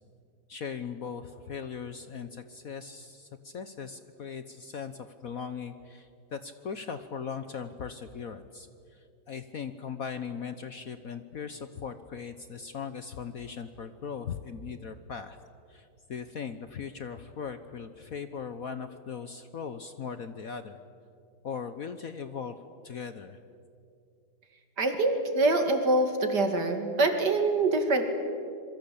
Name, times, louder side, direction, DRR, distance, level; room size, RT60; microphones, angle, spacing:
voice 1, 0.5-6.1 6.3-8.7 9.3-15.4 15.7-15.8 16.1-20.8 21.4-22.6 22.8-23.4, left 6 dB, 55° left, 10 dB, 1.2 m, -39 dB
voice 2, 24.8-28.1, right 2 dB, 55° right, 6 dB, 2.9 m, -25 dB
26.5 x 23.0 x 8.5 m, 2.4 s
omnidirectional pair, 2.2 m